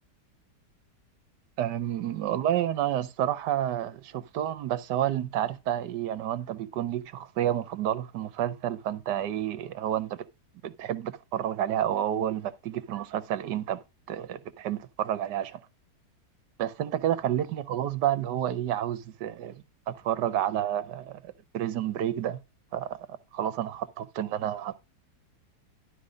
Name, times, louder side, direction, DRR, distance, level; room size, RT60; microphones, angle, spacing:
voice 1, 1.6-10.2 10.6-13.8 14.1-15.6 16.6-22.4 22.7-24.8, right 11 dB, 75° right, 1.4 m, -30 dB
11.5 x 5.0 x 5.1 m
omnidirectional pair, 1.9 m